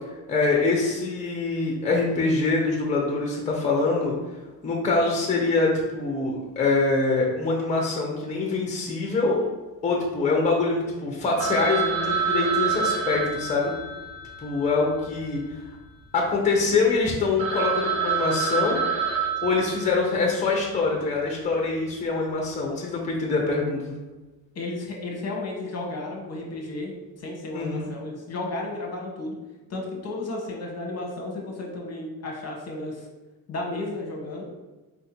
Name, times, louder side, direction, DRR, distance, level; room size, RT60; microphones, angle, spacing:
voice 1, 0.3-4.2 4.6-9.5 9.8-13.7 14.4-15.4 16.1-18.8 19.4-24.0 27.5-27.9, left 3 dB, 20° left, -1 dB, 0.7 m, -24 dB
Telephone, 11.4-15.7 16.0-16.1 16.7-16.8 17.1-17.2 17.4-20.4, right 6 dB, 70° right, 1.5 m, -28 dB
voice 2, 24.5-29.4 29.7-33.0 33.5-34.5, left 2 dB, 45° left, 0 dB, 0.9 m, -33 dB
4.4 x 2.6 x 4.2 m, 1.2 s
cardioid pair, 150°, 36 cm